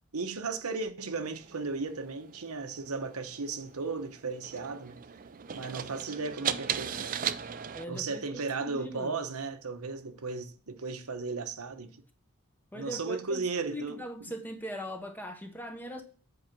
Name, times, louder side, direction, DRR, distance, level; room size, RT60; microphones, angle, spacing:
voice 1, 0.1-5.0 5.5-7.1 7.9-12.0 12.7-14.0, right 4 dB, 80° right, 0.9 m, -35 dB
sound 1, 1.1-7.8, right 8 dB, 35° right, 0.4 m, -38 dB
voice 2, 7.7-9.2 12.7-16.0, equal, 10° left, 0.9 m, -40 dB
8.0 x 4.8 x 6.0 m
head